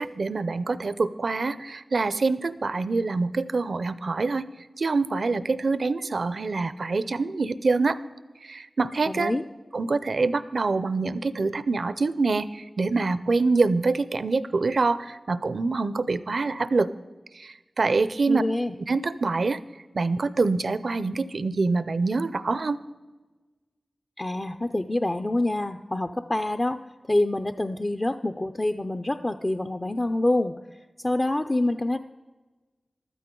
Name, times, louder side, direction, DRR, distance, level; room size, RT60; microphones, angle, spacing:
voice 1, 0.0-4.4 4.8-8.0 8.4-9.3 9.7-16.9 17.3-18.4 18.9-19.6 19.9-22.8, right 3 dB, 75° right, 15 dB, 0.5 m, -25 dB
voice 2, 9.1-9.4 18.3-18.7 24.2-26.8 27.1-30.5 31.0-32.0, left 1 dB, 35° left, 8 dB, 0.5 m, -26 dB
14.5 x 12.5 x 3.8 m, 1.2 s
cardioid pair, 45°, 0 cm